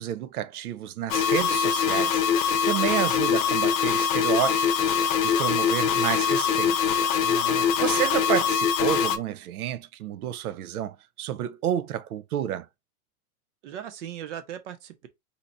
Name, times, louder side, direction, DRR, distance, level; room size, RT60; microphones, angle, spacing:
voice 1, 0.0-4.9 5.2-6.8 7.8-12.7, right 11 dB, 80° right, 0.6 m, -30 dB
sound 1, 1.1-9.2, left 7 dB, 60° left, 0.7 m, -23 dB
voice 2, 7.2-7.8 13.6-15.1, right 9 dB, 50° right, 0.8 m, -38 dB
2.8 x 2.4 x 4.2 m
supercardioid pair, 155°, 45 cm